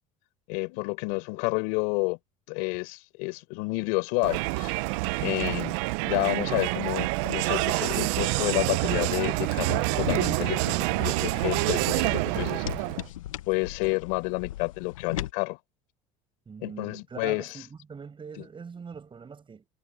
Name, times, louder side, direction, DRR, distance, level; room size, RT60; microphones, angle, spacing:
voice 1, 0.5-2.2 2.5-4.7 5.2-5.8 6.0-12.6 13.5-15.6 16.6-17.6, left 31 dB, 75° left, 4.2 m, -30 dB
Crowd, 4.2-13.1, right 25 dB, 75° right, 0.7 m, -27 dB
sound 1, 9.8-15.3, left 13 dB, 90° left, 1.3 m, -38 dB
voice 2, 16.5-19.7, right 5 dB, 30° right, 6.6 m, -42 dB
hypercardioid pair, 75°, 17 cm